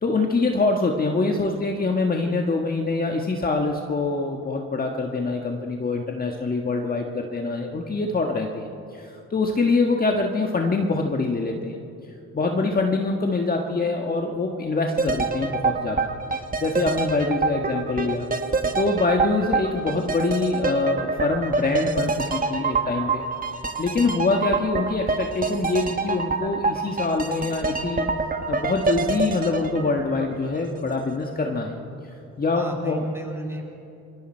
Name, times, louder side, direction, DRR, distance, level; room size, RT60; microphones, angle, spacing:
voice 1, 0.0-11.8 12.3-16.1 16.6-18.3 18.7-23.2 23.8-28.1 28.5-31.8 32.4-33.1, left 3 dB, 30° left, 2 dB, 1.6 m, -24 dB
sound 1, 15.0-30.9 31.2-31.3, right 4 dB, 30° right, 1.5 m, -26 dB
voice 2, 32.5-33.6, right 1 dB, 10° right, 1 dB, 5.0 m, -33 dB
27.0 x 21.5 x 4.5 m, 2.8 s
cardioid pair, 90°, 30 cm